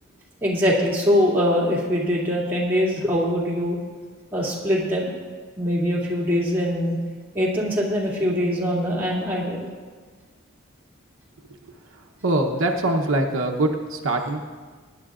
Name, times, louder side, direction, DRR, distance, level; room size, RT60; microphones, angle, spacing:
voice 1, 0.4-3.8 4.3-5.2 5.6-7.0 7.3-9.7, equal, 10° right, -7 dB, 2.5 m, -22 dB
voice 2, 12.2-14.4, right 2 dB, 75° right, 2 dB, 0.9 m, -23 dB
22.5 x 10.5 x 2.5 m, 1.5 s
head